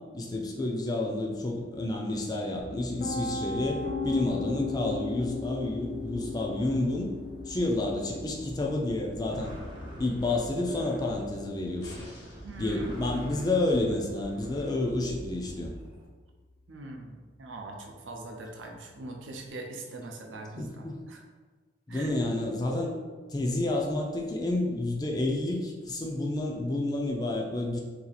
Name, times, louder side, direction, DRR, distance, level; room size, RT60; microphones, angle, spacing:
voice 1, 0.1-7.1 7.5-9.5 10.0-12.0 12.6-15.7 20.6-21.0 21.9-22.9 23.3-27.8, left 2 dB, 20° left, 0 dB, 0.4 m, -30 dB
Piano, 2.6-14.5, left 3 dB, 55° left, 1.1 m, -38 dB
sound 1, 3.7-16.1, right 1 dB, 25° right, 0.6 m, -45 dB
sound 2, 11.8-12.6 14.2-14.3, equal, 75° left, 1.0 m, -49 dB
voice 2, 12.4-13.0 16.7-21.2 21.9-22.1, right 2 dB, 85° right, 1 dB, 0.5 m, -42 dB
2.8 x 2.4 x 3.9 m, 1.4 s
head